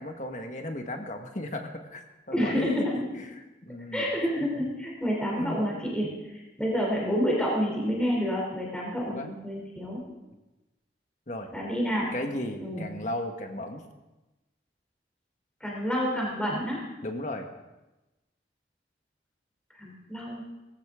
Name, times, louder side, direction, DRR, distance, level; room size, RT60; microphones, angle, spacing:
voice 1, 0.0-2.9 3.2-4.1 5.4-5.6 9.1-9.3 11.3-11.5 12.1-13.8 17.0-17.5, left 1 dB, 40° left, 4 dB, 1.5 m, -35 dB
voice 2, 2.3-3.1 3.9-10.0 11.5-12.1 12.6-12.9 15.6-16.8 19.8-20.4, equal, 5° left, -3 dB, 3.2 m, -29 dB
19.0 x 16.0 x 3.7 m, 1.1 s
head